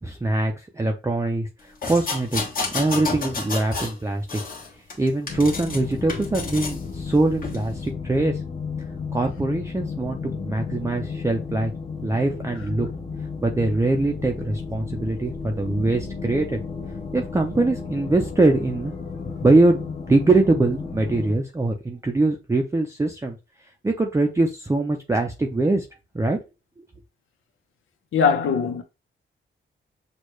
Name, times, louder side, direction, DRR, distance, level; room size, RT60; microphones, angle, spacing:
voice 1, 0.0-2.4 2.7-4.4 5.0-8.4 9.1-11.7 12.0-12.9 13.4-16.6 17.1-18.9 19.4-19.8 20.1-23.4 23.8-25.9 26.1-26.4, right 2 dB, 15° right, 0.5 m, -22 dB
sound 1, 1.8-4.0 4.3-5.8 6.1-6.8 7.4-7.6, left 4 dB, 45° left, 1.4 m, -30 dB
sound 2, 5.3-21.3, left 5 dB, 30° left, 0.8 m, -33 dB
voice 2, 28.1-28.8, left 6 dB, 85° left, 1.0 m, -20 dB
6.3 x 2.4 x 3.1 m
wide cardioid pair, 150°, 21 cm